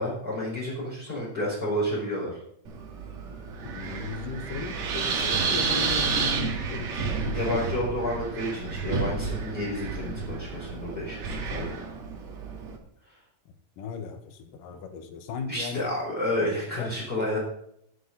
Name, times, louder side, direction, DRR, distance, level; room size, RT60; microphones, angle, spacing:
voice 1, 0.0-2.4 7.3-11.8 15.5-17.4, left 1 dB, 15° left, -7 dB, 4.7 m, -30 dB
Wind, 2.7-12.8, right 5 dB, 55° right, 2.9 m, -30 dB
voice 2, 3.6-7.3 13.8-15.9 16.7-17.3, left 5 dB, 80° left, 7 dB, 2.9 m, -37 dB
20.0 x 8.4 x 4.0 m, 0.70 s
omnidirectional pair, 3.9 m